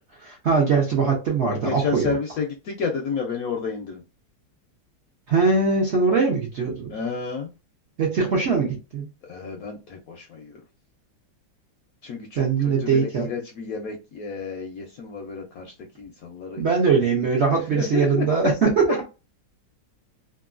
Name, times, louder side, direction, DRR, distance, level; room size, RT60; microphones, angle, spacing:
voice 1, 0.2-2.2 5.3-7.0 8.0-9.1 12.4-13.3 16.6-19.1, right 5 dB, 55° right, -2 dB, 0.8 m, -21 dB
voice 2, 1.6-4.0 6.9-7.5 9.2-10.6 12.0-16.6 17.2-17.3 17.7-18.3, left 5 dB, 70° left, 2 dB, 0.8 m, -31 dB
3.0 x 2.5 x 2.4 m, 0.29 s
omnidirectional pair, 2.0 m